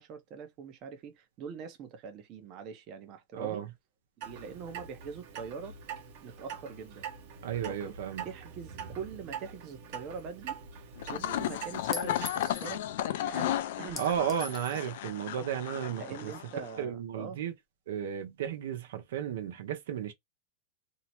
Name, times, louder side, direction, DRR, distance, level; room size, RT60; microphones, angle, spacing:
voice 1, 0.0-3.6 4.2-5.8 6.2-7.0 7.6-8.0 8.2-10.6 11.1-12.8 13.2-14.0 15.9-17.4, right 6 dB, 40° right, 0.7 m, -43 dB
voice 2, 3.3-3.7 7.4-8.3 14.0-16.3 16.8-17.5 17.9-20.1, right 9 dB, 75° right, 0.7 m, -34 dB
Clock, 4.2-12.3, right 7 dB, 55° right, 1.0 m, -44 dB
sound 1, 11.0-16.8, left 12 dB, 70° left, 0.4 m, -34 dB
Chink clink, 11.9-12.7 14.0-14.8, left 3 dB, 10° left, 0.7 m, -42 dB
2.7 x 2.1 x 2.9 m
supercardioid pair, 130°, 0 cm